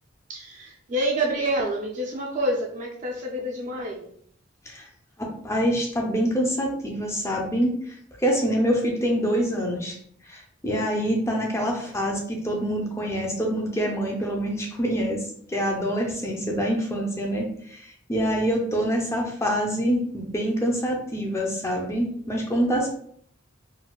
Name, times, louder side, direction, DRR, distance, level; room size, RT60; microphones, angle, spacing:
voice 1, 0.3-4.1, right 1 dB, 35° right, -1 dB, 0.4 m, -28 dB
voice 2, 5.2-10.0 10.3-15.2 15.5-22.9, equal, 15° left, 0 dB, 0.5 m, -26 dB
3.9 x 2.2 x 2.3 m, 0.63 s
head